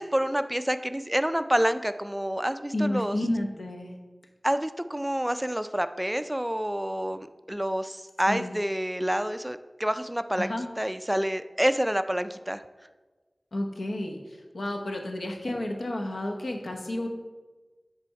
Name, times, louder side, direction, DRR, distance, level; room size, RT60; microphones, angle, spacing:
voice 1, 0.0-3.2 4.4-12.6, equal, 10° right, 11 dB, 0.3 m, -28 dB
voice 2, 2.7-4.0 8.3-8.5 10.4-10.6 13.5-17.1, left 1 dB, 85° left, 2 dB, 0.9 m, -31 dB
10.0 x 3.4 x 4.7 m, 1.3 s
wide cardioid pair, 50°, 0 cm